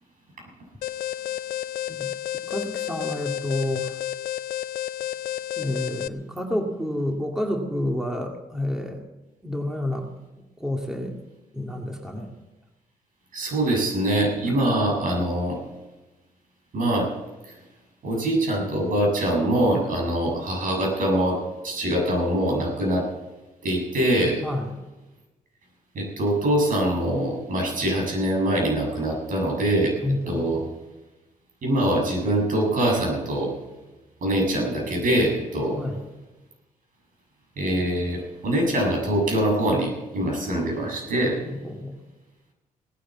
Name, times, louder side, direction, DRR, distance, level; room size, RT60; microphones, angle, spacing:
Alarm, 0.8-6.1, left 12 dB, 85° left, 0.5 m, -31 dB
voice 1, 2.5-4.0 5.6-9.0 9.4-10.1 10.6-11.2 11.5-12.3 14.5-14.6 24.4-24.8 30.0-30.4 35.7-36.0 41.4-42.0, left 1 dB, 5° right, 1 dB, 2.1 m, -29 dB
voice 2, 13.3-15.6 16.7-17.1 17.4-17.5 18.0-23.1 23.6-24.4 25.9-30.0 30.3-30.6 31.6-33.5 34.2-35.8 37.6-41.4, right 1 dB, 65° right, 0 dB, 7.3 m, -23 dB
18.0 x 10.0 x 7.3 m, 1.1 s
cardioid pair, 90°, 15 cm